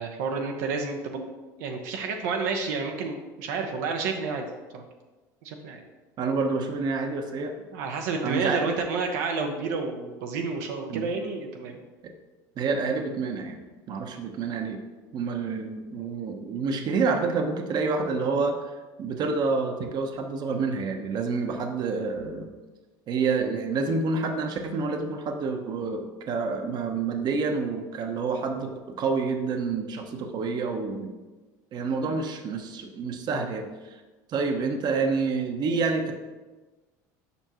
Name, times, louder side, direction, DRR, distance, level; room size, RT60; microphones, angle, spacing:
voice 1, 0.0-1.3 1.6-4.5 4.7-4.8 5.4-5.8 7.7-11.8, right 4 dB, 80° right, 3 dB, 0.7 m, -30 dB
voice 2, 6.2-7.5 8.2-8.7 10.9-11.1 12.6-14.8 15.1-22.5 23.1-31.1 31.7-34.0 34.3-36.1, right 4 dB, 50° right, 5 dB, 0.8 m, -28 dB
6.9 x 5.3 x 3.0 m, 1.2 s
supercardioid pair, 95°, 9 cm